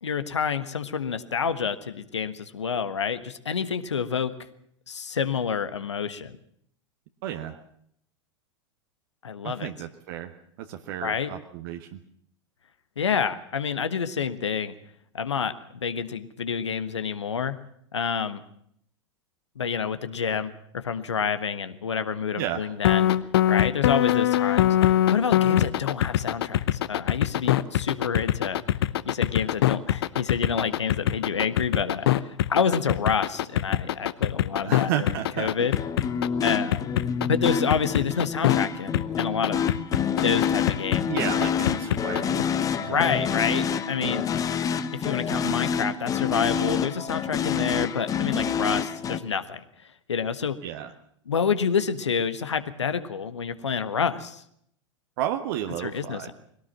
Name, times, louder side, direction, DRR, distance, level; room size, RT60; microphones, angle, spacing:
voice 1, 0.0-4.3 4.9-6.4 9.2-9.7 11.0-11.3 13.0-14.7 15.1-17.6 17.9-18.4 19.5-23.1 23.5-28.6 29.0-35.8 36.4-36.9 37.2-39.7 40.2-41.1 42.8-44.3 44.9-50.6 51.3-54.4 55.8-56.3, left 6 dB, 70° left, 11 dB, 1.5 m, -28 dB
voice 2, 7.2-7.6 9.4-10.3 10.6-12.0 22.4-22.6 34.6-35.5 41.1-42.5 42.8-43.3 50.6-50.9 55.2-56.3, right 11 dB, 50° right, 6 dB, 1.4 m, -32 dB
sound 1, 22.8-38.6 38.9-42.4, left 12 dB, 55° left, 0.9 m, -23 dB
sound 2, 35.6-49.2, left 7 dB, 20° left, 1.2 m, -27 dB
22.0 x 17.5 x 7.4 m, 0.69 s
figure-of-eight pair, 90°, 15 cm